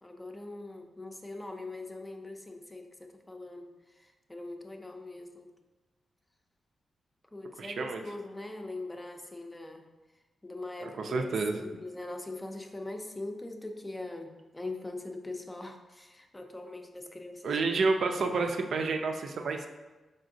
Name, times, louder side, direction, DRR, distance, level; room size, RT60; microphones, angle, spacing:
voice 1, 0.0-5.5 7.3-9.8 10.4-11.3 11.6-17.8, left 2 dB, 20° left, 4 dB, 0.5 m, -42 dB
voice 2, 7.6-8.0 10.8-11.6 17.4-19.7, right 4 dB, 70° right, 4 dB, 0.4 m, -29 dB
4.9 x 3.6 x 2.6 m, 1.2 s
cardioid pair, 70°, 0 cm